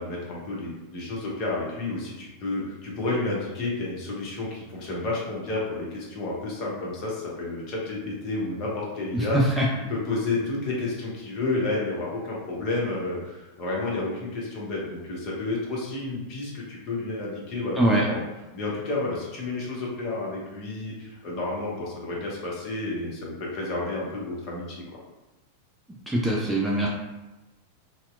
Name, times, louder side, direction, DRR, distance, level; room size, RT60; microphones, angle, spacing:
voice 1, 0.0-9.4 9.9-17.8 18.1-18.2 18.5-24.8, left 2 dB, 40° left, -3 dB, 0.8 m, -31 dB
voice 2, 9.1-9.7 17.8-18.0 26.1-26.9, right 1 dB, 5° right, -4 dB, 0.4 m, -22 dB
2.7 x 2.0 x 2.4 m, 1.1 s
figure-of-eight pair, 90°, 0 cm